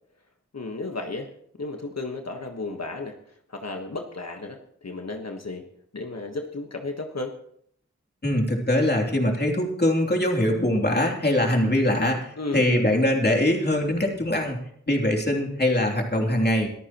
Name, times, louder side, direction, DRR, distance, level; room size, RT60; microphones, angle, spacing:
voice 1, 0.5-1.3 1.6-3.2 3.5-5.6 5.9-7.4 12.4-12.7, left 2 dB, 60° left, 4 dB, 1.4 m, -33 dB
voice 2, 8.2-14.6 14.9-16.7, left 1 dB, 35° left, 1 dB, 3.1 m, -22 dB
23.5 x 14.0 x 3.0 m, 0.67 s
wide cardioid pair, 60°, 29 cm